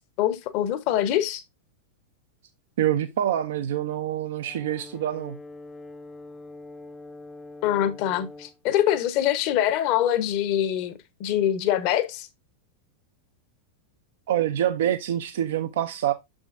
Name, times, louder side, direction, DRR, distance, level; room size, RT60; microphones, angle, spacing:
voice 1, 0.2-1.4 7.6-10.9 11.2-12.3, left 11 dB, 45° left, 1.0 m, -24 dB
voice 2, 2.8-5.4 14.3-16.1, right 11 dB, 55° right, 0.6 m, -26 dB
Brass instrument, 4.4-8.6, left 2 dB, 10° left, 0.7 m, -44 dB
7.1 x 6.2 x 2.5 m
figure-of-eight pair, 90°, 0 cm